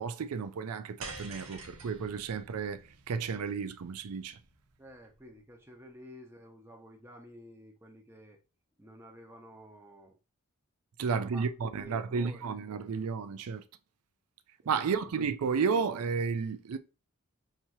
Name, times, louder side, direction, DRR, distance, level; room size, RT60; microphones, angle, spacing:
voice 1, 0.0-4.4 11.0-13.6 14.7-16.8, right 5 dB, 80° right, 0.4 m, -32 dB
sound 1, 1.0-5.4, right 3 dB, 60° right, 1.2 m, -48 dB
voice 2, 4.8-8.4 8.8-10.2 11.1-12.9 14.8-15.1, equal, 10° right, 0.8 m, -52 dB
6.0 x 2.9 x 2.7 m
head